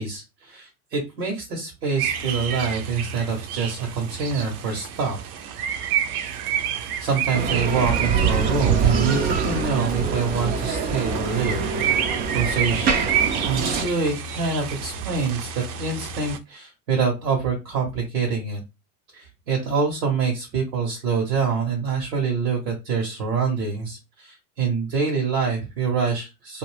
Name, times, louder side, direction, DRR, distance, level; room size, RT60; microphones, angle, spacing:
voice 1, 0.0-5.2 5.7-5.9 7.0-11.7 12.3-12.9 13.5-18.6 19.1-26.6, right 5 dB, 80° right, -1 dB, 1.2 m, -25 dB
sound 1, 2.0-16.4, right 8 dB, 60° right, 0.6 m, -28 dB
Bicycle, 7.3-13.9, right 4 dB, 20° right, 0.3 m, -26 dB
2.6 x 2.5 x 3.2 m, 0.25 s
hypercardioid pair, 85°, 48 cm